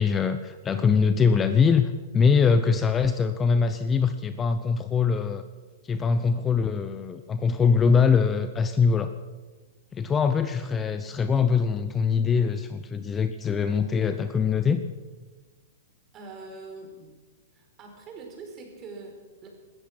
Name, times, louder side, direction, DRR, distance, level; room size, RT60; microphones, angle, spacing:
voice 1, 0.0-5.4 5.9-9.1 9.9-14.8, left 5 dB, 20° left, 10 dB, 0.8 m, -23 dB
voice 2, 16.1-17.1 17.5-19.5, right 3 dB, 30° right, 2 dB, 4.9 m, -43 dB
17.0 x 13.5 x 6.2 m, 1.3 s
hypercardioid pair, 115°, 0 cm